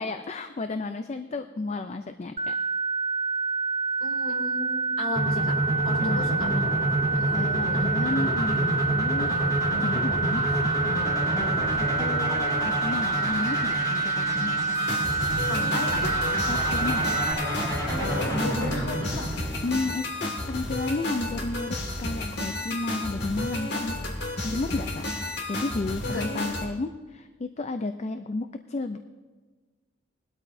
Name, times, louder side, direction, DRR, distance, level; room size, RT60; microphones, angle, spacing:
voice 1, 0.0-2.5 6.0-6.4 7.3-9.4 9.7-10.6 10.9-14.7 16.5-17.1 19.6-24.0 24.4-29.0, left 3 dB, 35° left, 9 dB, 0.4 m, -32 dB
sound 1, 2.4-17.3, right 3 dB, 30° right, 0.5 m, -28 dB
voice 2, 4.0-5.5 5.8-6.6 7.1-7.4 7.8-7.9 15.5-16.1 17.9-19.2 26.0-26.3, left 2 dB, 80° left, 1 dB, 2.2 m, -34 dB
sound 2, 5.2-20.1, equal, 20° left, 3.4 m, -29 dB
sound 3, 14.7-26.7, left 1 dB, 55° left, 2.0 m, -32 dB
20.0 x 12.5 x 2.7 m, 1.3 s
head